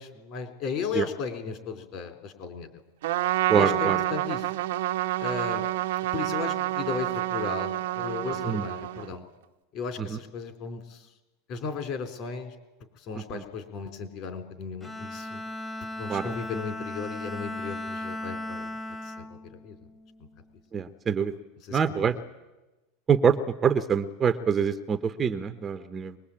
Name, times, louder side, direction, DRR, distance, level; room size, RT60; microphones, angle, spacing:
voice 1, 0.0-2.7 3.5-4.5 5.2-5.7 6.1-9.2 9.7-11.1 11.5-12.5 13.0-15.4 16.0-18.7 19.0-19.8 21.6-22.1, left 5 dB, 45° left, 7 dB, 3.9 m, -35 dB
Trumpet, 3.0-9.2, right 16 dB, 80° right, 1.0 m, -28 dB
voice 2, 3.5-4.0 8.5-8.7 13.3-13.4 16.1-16.2 20.7-21.3 21.7-22.1 23.1-23.4 23.6-26.2, right 7 dB, 20° right, 10 dB, 0.9 m, -25 dB
Bowed string instrument, 14.8-20.3, left 1 dB, 10° left, 1.3 m, -37 dB
23.0 x 21.0 x 8.7 m, 1.1 s
supercardioid pair, 150°, 0 cm